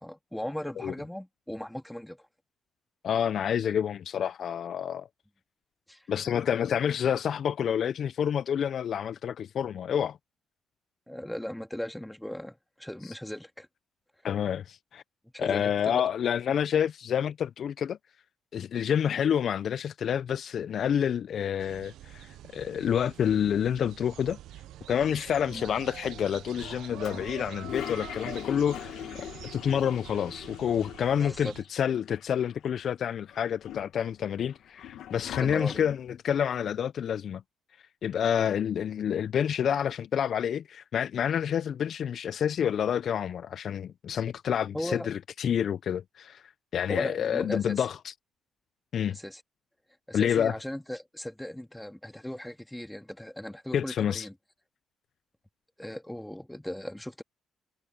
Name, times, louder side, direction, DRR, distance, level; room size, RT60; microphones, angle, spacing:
voice 1, 0.0-2.3 5.9-6.4 11.1-13.7 15.3-16.0 25.5-25.7 31.2-31.5 35.4-35.9 44.7-45.1 46.9-47.9 49.1-49.4 50.1-54.3 55.8-57.2, left 1 dB, 5° left, 1.8 m, -38 dB
voice 2, 3.0-5.1 6.1-10.2 14.2-15.0 15.4-18.0 18.5-24.4 24.9-29.0 29.5-37.4 38.0-46.4 46.7-48.1 48.9-49.2 50.1-50.5 53.7-54.3, left 8 dB, 60° left, 0.4 m, -28 dB
sound 1, 21.6-31.6, right 13 dB, 80° right, 0.5 m, -46 dB
Toilet flush, 27.0-31.4 31.6-31.7 31.9-32.8 33.3-36.1, left 11 dB, 75° left, 1.3 m, -41 dB
cardioid pair, 90°, 0 cm